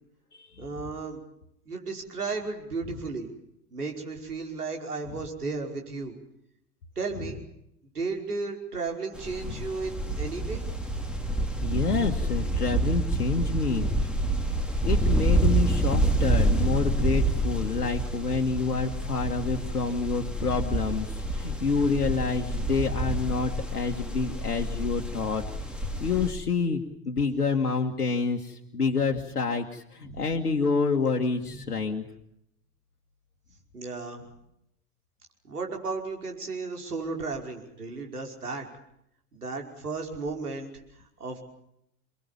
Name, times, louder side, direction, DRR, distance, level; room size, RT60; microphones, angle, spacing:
voice 1, 0.6-1.2 1.7-3.3 3.7-6.2 7.0-7.4 7.9-10.7 30.0-30.2 31.5-31.7 33.7-34.2 35.4-38.7 39.3-40.7 41.0-41.4, right 4 dB, 80° right, 2 dB, 5.5 m, -34 dB
sound 1, 9.1-26.3, right 1 dB, ahead, 4.0 m, -28 dB
voice 2, 11.6-14.2 14.8-25.4 26.0-32.0, left 4 dB, 75° left, 2 dB, 1.9 m, -28 dB
29.0 x 21.0 x 7.4 m, 0.77 s
figure-of-eight pair, 85°, 45 cm